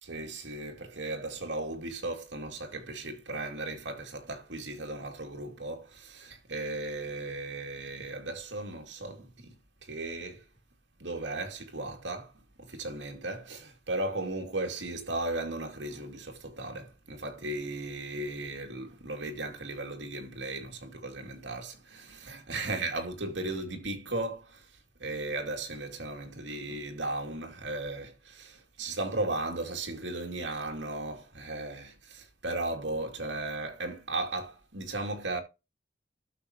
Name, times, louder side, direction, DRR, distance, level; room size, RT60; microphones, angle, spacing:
voice 1, 0.0-9.5 9.8-10.5 11.0-35.4, right 2 dB, 90° right, 2.3 m, -36 dB
12.5 x 7.1 x 2.9 m
head